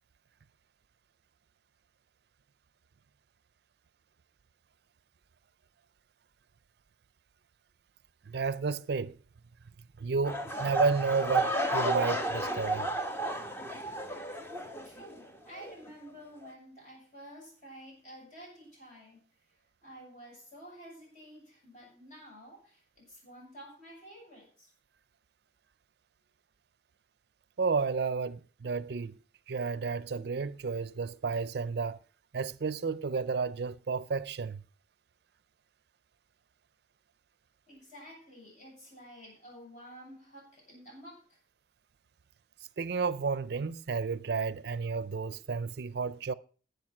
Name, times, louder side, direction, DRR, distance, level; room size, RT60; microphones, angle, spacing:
voice 1, 8.3-9.2 10.0-12.9 27.6-29.1 29.5-32.0 32.3-34.6 42.8-46.3, right 4 dB, 60° right, 0.4 m, -31 dB
sound 1, 10.2-15.3 15.5-15.9 16.4-16.5, right 1 dB, 15° left, 1.0 m, -32 dB
voice 2, 14.8-19.3 19.8-24.7 37.7-41.4, equal, 45° left, 7.4 m, -51 dB
11.0 x 8.1 x 5.9 m
head